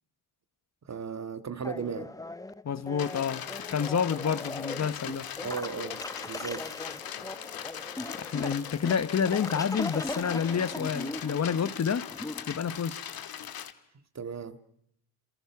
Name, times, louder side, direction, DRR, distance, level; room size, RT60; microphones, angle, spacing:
voice 1, 0.8-2.1 5.4-6.7 14.1-14.6, right 6 dB, 40° right, 2.0 m, -36 dB
sound 1, 1.6-12.4, left 2 dB, 10° left, 1.1 m, -39 dB
voice 2, 2.6-3.4 3.7-5.3 8.2-12.1 12.5-13.0, left 7 dB, 40° left, 1.2 m, -29 dB
sound 2, 3.0-13.7, left 9 dB, 60° left, 1.8 m, -40 dB
27.5 x 27.5 x 6.0 m
supercardioid pair, 65°, 41 cm